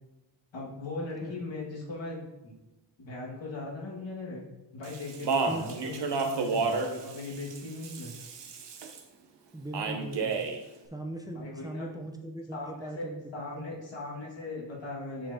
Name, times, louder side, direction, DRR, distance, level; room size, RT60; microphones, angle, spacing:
voice 1, 0.5-2.5 3.0-4.4 4.7-8.1 11.3-11.9 12.5-15.3, left 2 dB, 90° left, -4 dB, 1.8 m, -39 dB
Speech, 4.8-9.0 9.7-10.6, right 4 dB, 70° right, 0.8 m, -31 dB
voice 2, 9.5-10.4 10.9-13.2, right 1 dB, 10° right, 2 dB, 0.6 m, -39 dB
6.3 x 6.2 x 2.7 m, 1.0 s
wide cardioid pair, 110°, 44 cm